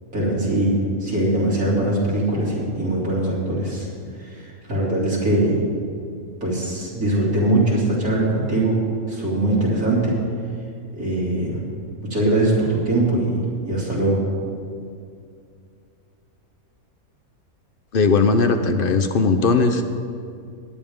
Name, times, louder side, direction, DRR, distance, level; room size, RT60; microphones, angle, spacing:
voice 1, 0.1-3.9 4.2-5.6 6.4-8.8 9.1-10.1 10.9-11.6 12.1-13.4 13.6-14.2, right 1 dB, 75° right, -7 dB, 3.2 m, -21 dB
voice 2, 17.9-19.8, left 4 dB, 60° left, 7 dB, 0.6 m, -18 dB
19.0 x 9.2 x 3.6 m, 2.4 s
omnidirectional pair, 1.6 m